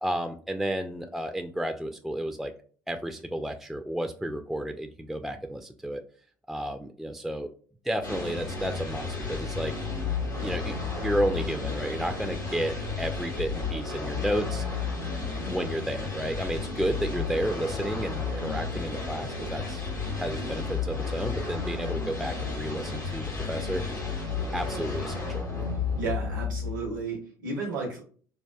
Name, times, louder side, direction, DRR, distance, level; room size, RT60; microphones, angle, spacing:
voice 1, 0.0-2.5 2.9-6.0 6.5-7.5 7.8-9.7 10.4-14.7 15.4-19.8 20.1-23.8 24.5-25.4, right 1 dB, ahead, 6 dB, 0.3 m, -32 dB
sound 1, 8.0-27.0, left 4 dB, 85° left, 1.0 m, -32 dB
voice 2, 26.0-28.0, right 3 dB, 75° right, -1 dB, 0.7 m, -33 dB
4.4 x 2.3 x 2.3 m, 0.43 s
figure-of-eight pair, 55°, 11 cm